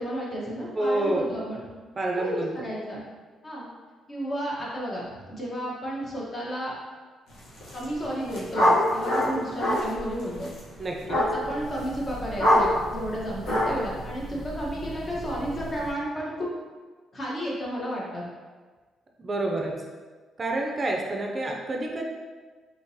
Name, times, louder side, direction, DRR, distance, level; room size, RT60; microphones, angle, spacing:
voice 1, 0.0-1.6 2.1-3.0 3.4-3.7 4.1-6.8 7.7-10.5 11.1-16.5 17.1-18.2, equal, 35° left, -5 dB, 1.0 m, -32 dB
voice 2, 0.7-1.3 2.0-2.5 10.8-11.2 19.2-19.8 20.4-22.0, right 2 dB, 35° right, 0 dB, 0.4 m, -28 dB
sound 1, 7.5-7.8 8.1-15.9, left 1 dB, 80° left, 1.0 m, -27 dB
3.6 x 2.8 x 2.7 m, 1.4 s
cardioid pair, 90°, 0 cm